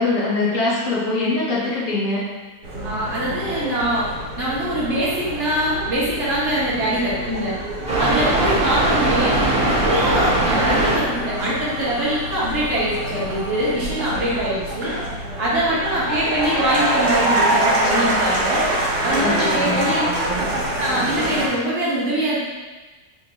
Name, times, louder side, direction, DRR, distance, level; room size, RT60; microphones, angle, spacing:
voice 1, 0.0-2.2 19.2-19.9, left 2 dB, 55° left, -6 dB, 1.3 m, -22 dB
sound 1, 2.6-21.5, right 1 dB, 80° right, 1.7 m, -26 dB
voice 2, 2.8-4.1 4.4-7.5 8.0-14.9 15.4-18.7 19.0-20.1 20.5-22.4, right 1 dB, 50° right, -8 dB, 1.4 m, -23 dB
sound 2, 7.8-13.7, right 1 dB, 30° right, 1.6 m, -22 dB
4.4 x 2.8 x 2.8 m, 1.2 s
omnidirectional pair, 1.7 m